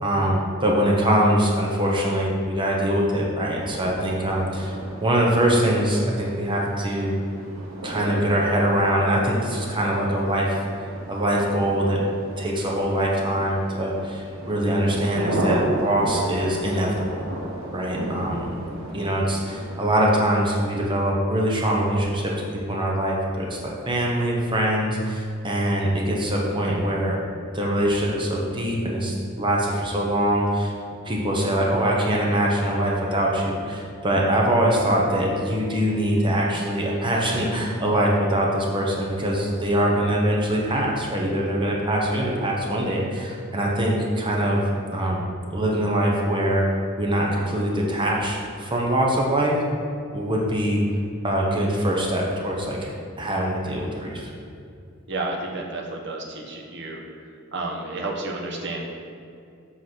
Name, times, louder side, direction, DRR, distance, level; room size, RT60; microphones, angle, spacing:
voice 1, 0.0-7.1 7.8-10.6 11.1-12.0 12.4-17.2 17.7-18.5 18.9-27.2 27.5-30.7 31.0-44.6 44.9-46.6 47.0-49.6 50.1-50.8 51.2-52.9 53.2-54.3, right 1 dB, 25° right, -2 dB, 1.0 m, -23 dB
sound 1, 3.4-19.8, right 1 dB, 75° right, 1.2 m, -34 dB
voice 2, 55.1-57.0 57.5-58.8, right 2 dB, 55° right, 0 dB, 1.2 m, -31 dB
7.7 x 4.1 x 6.1 m, 2.4 s
head